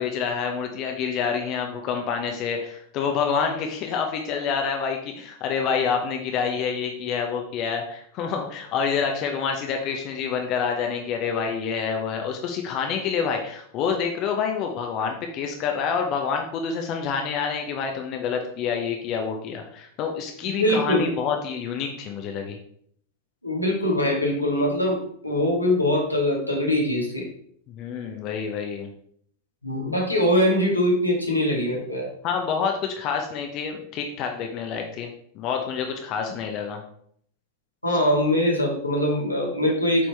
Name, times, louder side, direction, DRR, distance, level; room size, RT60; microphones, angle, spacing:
voice 1, 0.0-22.6 27.7-28.9 32.2-35.1 35.3-36.8, left 6 dB, 40° left, 3 dB, 0.9 m, -27 dB
voice 2, 20.4-21.1 23.4-27.2 29.6-32.1 37.8-40.1, left 1 dB, 90° left, -2 dB, 1.8 m, -22 dB
8.5 x 4.5 x 3.5 m, 0.65 s
figure-of-eight pair, 90°, 0 cm